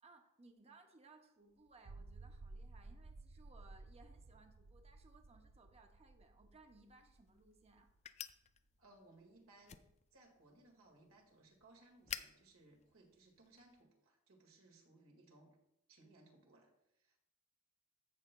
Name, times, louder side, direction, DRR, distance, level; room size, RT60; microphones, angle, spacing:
voice 1, 0.0-7.9, right 3 dB, 30° right, 5 dB, 0.7 m, -64 dB
sound 1, 1.7-8.2, right 3 dB, 65° right, 0.4 m, -56 dB
sound 2, 6.7-13.8, left 9 dB, 30° left, 0.3 m, -54 dB
voice 2, 8.8-9.8 10.1-15.5 15.9-17.2, right 2 dB, 80° right, 0 dB, 1.9 m, -65 dB
15.0 x 5.9 x 2.2 m, 0.85 s
head